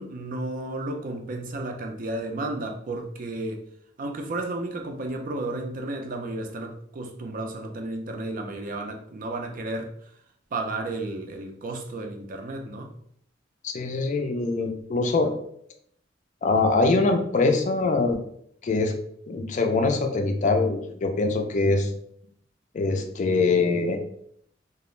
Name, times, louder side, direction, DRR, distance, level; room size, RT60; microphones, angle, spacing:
voice 1, 0.0-3.6 4.0-10.1 10.5-12.9, right 2 dB, 45° right, 3 dB, 0.4 m, -33 dB
voice 2, 13.6-15.3 16.4-18.2 18.6-18.9 19.3-21.9 22.7-24.0, left 3 dB, 40° left, 5 dB, 0.3 m, -23 dB
2.4 x 2.0 x 3.0 m, 0.68 s
head